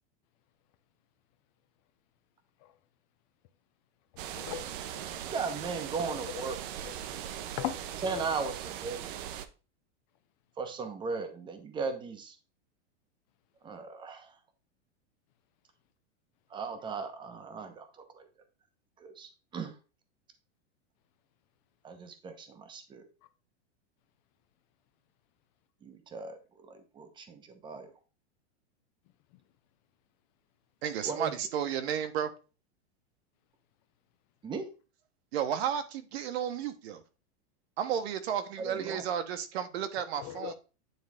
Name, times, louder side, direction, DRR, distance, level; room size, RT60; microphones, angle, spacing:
sound 1, 4.2-9.5, right 10 dB, 50° right, 0.8 m, -40 dB
voice 1, 4.4-4.7 6.1-6.5 6.8-7.2 7.5-8.2 40.2-40.5, left 12 dB, 40° left, 0.6 m, -39 dB
voice 2, 5.2-6.6 8.0-9.1 10.6-12.4 13.6-14.4 16.5-18.3 19.0-19.7 21.8-23.1 25.8-27.9 31.0-31.3 34.4-34.7 38.6-39.0, right 4 dB, 15° right, 0.9 m, -37 dB
voice 3, 30.8-32.3 35.3-37.0 37.8-40.5, right 9 dB, 65° right, 1.2 m, -33 dB
9.4 x 3.9 x 3.6 m
supercardioid pair, 155°, 34 cm